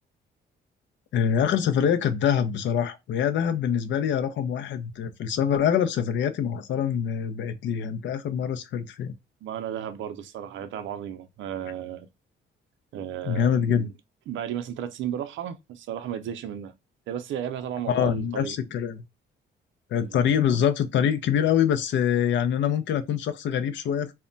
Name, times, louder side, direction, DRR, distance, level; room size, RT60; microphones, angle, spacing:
voice 1, 1.1-9.1 13.2-13.9 17.9-19.0 19.9-24.1, left 8 dB, 70° left, 0.5 m, -25 dB
voice 2, 9.4-12.1 12.9-13.9 14.3-16.7 17.1-18.6 19.9-20.2, right 10 dB, 70° right, 0.5 m, -34 dB
2.1 x 2.1 x 3.7 m
cardioid pair, 90°, 20 cm